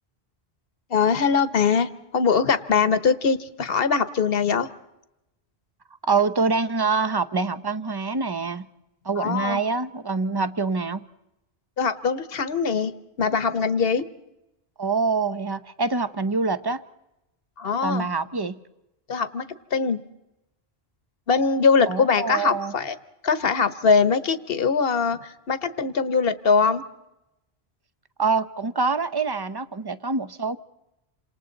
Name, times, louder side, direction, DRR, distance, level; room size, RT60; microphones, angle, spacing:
voice 1, 0.9-4.7 9.2-9.6 11.8-14.1 17.6-18.1 19.1-20.0 21.3-23.0 23.2-26.8, left 5 dB, 65° left, 13 dB, 1.2 m, -22 dB
voice 2, 6.1-8.7 9.0-11.0 14.8-16.8 17.8-18.6 21.9-22.7 28.2-30.6, right 4 dB, 25° right, 13 dB, 0.7 m, -25 dB
28.5 x 26.5 x 4.0 m, 0.93 s
omnidirectional pair, 1.0 m